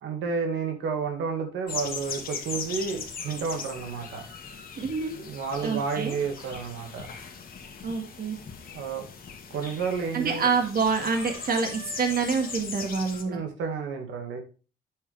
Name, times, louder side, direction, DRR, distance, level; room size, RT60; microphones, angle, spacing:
voice 1, 0.0-4.3 5.2-7.1 8.7-9.0 9.5-10.4 13.2-14.4, right 5 dB, 80° right, 4 dB, 2.1 m, -31 dB
sound 1, 1.7-13.2, left 5 dB, 50° left, 2.0 m, -39 dB
voice 2, 4.8-5.1 5.6-6.2 7.8-8.4 10.1-13.4, right 5 dB, 50° right, 4 dB, 2.0 m, -27 dB
Chicken rooster, 6.1-7.1 10.5-12.7, right 3 dB, 30° right, 2.3 m, -47 dB
8.8 x 7.1 x 3.5 m, 0.35 s
cardioid pair, 90°, 20 cm